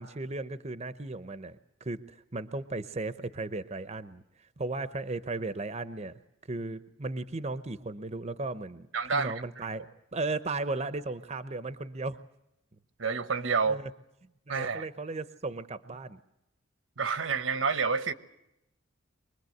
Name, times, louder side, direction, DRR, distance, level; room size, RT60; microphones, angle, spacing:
voice 1, 0.0-4.2 4.6-6.2 6.5-8.9 9.1-12.2 13.7-13.9 14.5-16.2, right 3 dB, 35° right, 12 dB, 0.8 m, -36 dB
voice 2, 8.9-9.7 13.0-13.8 14.5-14.9 17.0-18.1, right 5 dB, 80° right, 12 dB, 1.2 m, -29 dB
24.0 x 21.0 x 7.9 m, 0.84 s
head